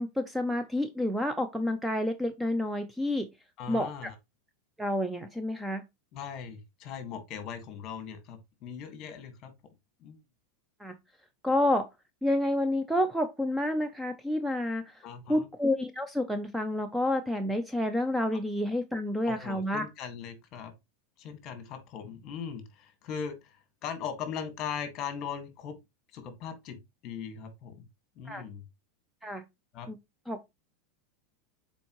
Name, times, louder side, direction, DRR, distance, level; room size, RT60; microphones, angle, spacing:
voice 1, 0.0-3.3 3.7-4.1 4.8-5.8 10.8-10.9 11.4-11.9 12.2-19.8 28.3-28.4 29.2-29.4 29.9-30.0 30.3-30.4, left 1 dB, 5° right, 0.5 m, -29 dB
voice 2, 3.6-4.1 6.1-9.5 10.0-10.2 15.0-15.5 19.3-20.7 21.2-25.8 26.1-26.8 27.0-27.8 28.2-28.6 29.7-29.9, left 7 dB, 35° left, 1.7 m, -39 dB
7.0 x 4.4 x 3.0 m
supercardioid pair, 160°, 0 cm